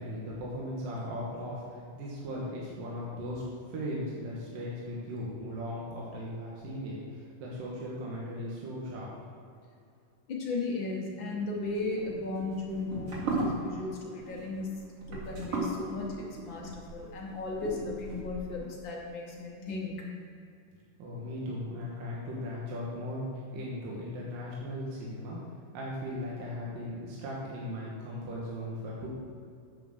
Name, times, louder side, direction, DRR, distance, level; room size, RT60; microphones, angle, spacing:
voice 1, 0.0-3.4 3.7-9.1 21.0-25.4 25.7-29.1, equal, 85° right, -5 dB, 3.2 m, -37 dB
voice 2, 10.3-20.1, left 3 dB, 50° left, -2 dB, 1.4 m, -36 dB
sound 1, 11.6-18.6, right 2 dB, 50° right, 2.9 m, -37 dB
9.0 x 6.0 x 6.5 m, 2.5 s
omnidirectional pair, 3.8 m